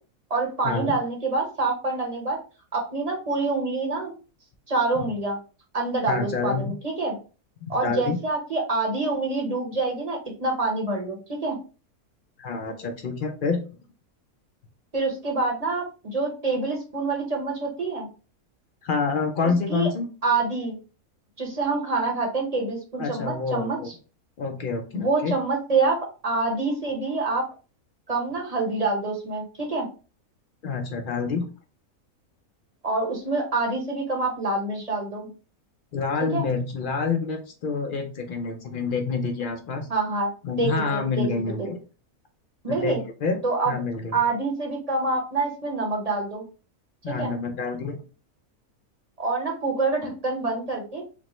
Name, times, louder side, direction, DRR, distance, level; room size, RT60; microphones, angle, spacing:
voice 1, 0.3-2.4 2.7-4.1 4.7-5.4 5.7-7.1 7.7-11.6 14.9-18.1 19.4-19.9 20.2-20.8 21.4-23.9 24.9-26.0 26.2-27.5 28.1-29.9 32.8-35.3 36.3-36.5 39.9-40.3 40.6-41.3 41.6-41.7 42.6-43.0 43.4-43.7 44.1-46.4 47.1-47.3 49.2-51.0, right 3 dB, 30° right, 0 dB, 0.9 m, -26 dB
voice 2, 6.1-6.7 7.7-8.2 12.4-13.6 18.8-20.1 23.0-23.9 24.4-25.3 30.6-31.4 35.9-39.9 40.4-41.8 42.7-42.9 43.2-43.4 43.7-44.2 47.0-48.0, left 4 dB, 65° left, 4 dB, 0.5 m, -27 dB
5.1 x 2.1 x 3.0 m, 0.35 s
omnidirectional pair, 1.5 m